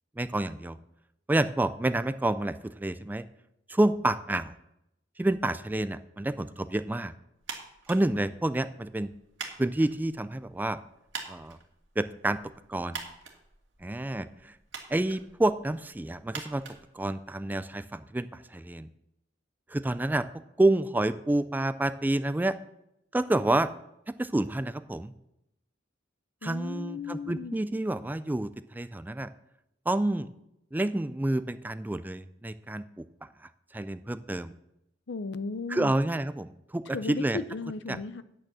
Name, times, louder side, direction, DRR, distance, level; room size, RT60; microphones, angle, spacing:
voice 1, 0.2-0.8 1.3-3.2 3.7-4.5 5.2-7.1 7.9-9.1 9.6-10.8 11.3-11.6 12.0-12.4 12.7-13.0 13.8-14.5 14.9-16.6 16.9-18.9 19.7-20.2 20.6-22.5 23.1-23.7 24.1-25.1 26.4-29.3 29.9-30.3 30.7-33.0 33.7-34.5 35.7-37.4 37.9-38.0, right 1 dB, 10° right, 0.3 m, -28 dB
sound 1, 7.4-17.6, right 5 dB, 70° right, 2.0 m, -46 dB
voice 2, 26.4-27.6 35.1-35.9 36.9-38.2, left 4 dB, 65° left, 0.5 m, -35 dB
9.0 x 8.4 x 6.2 m
head